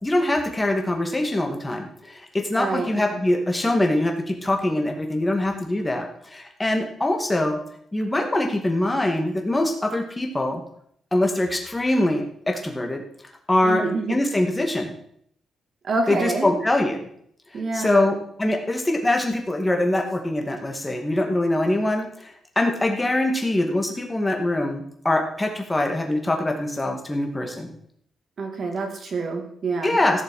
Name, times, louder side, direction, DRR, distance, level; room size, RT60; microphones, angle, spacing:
voice 1, 0.0-7.6 7.9-10.6 11.1-13.0 13.5-13.8 14.1-15.0 16.1-17.0 17.7-27.8 29.8-30.2, left 1 dB, 15° left, 2 dB, 2.0 m, -23 dB
voice 2, 2.5-3.2 13.6-14.2 15.8-16.5 17.5-18.2 28.4-30.0, right 3 dB, 50° right, 3 dB, 2.4 m, -27 dB
15.0 x 6.8 x 4.8 m, 0.68 s
cardioid pair, 120°, 0 cm